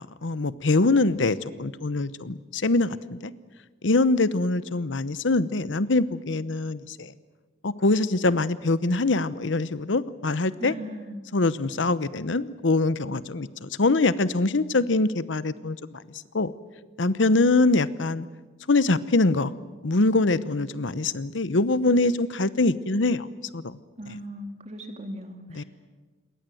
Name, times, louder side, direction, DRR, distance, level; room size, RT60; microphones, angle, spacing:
voice 1, 0.0-3.3 3.8-7.1 7.6-10.7 11.3-16.0 16.3-16.5 17.0-18.2 18.7-19.5 19.8-23.3 23.5-23.8 25.6-25.7, left 2 dB, 85° left, 16 dB, 0.9 m, -23 dB
voice 2, 10.6-11.3 20.2-20.4 24.0-25.6, equal, 35° right, 5 dB, 2.9 m, -38 dB
28.0 x 21.5 x 7.8 m, 1.3 s
head